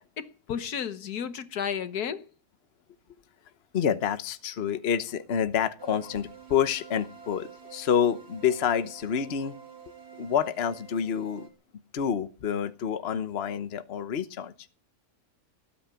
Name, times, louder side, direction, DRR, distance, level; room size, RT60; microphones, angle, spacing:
voice 1, 0.2-2.2, left 8 dB, 80° left, 1.6 m, -32 dB
voice 2, 3.7-9.5 10.2-11.5 11.9-14.5, left 8 dB, 45° left, 1.2 m, -28 dB
sound 1, 5.8-11.5, right 7 dB, 45° right, 2.5 m, -48 dB
18.5 x 8.7 x 9.0 m
omnidirectional pair, 1.6 m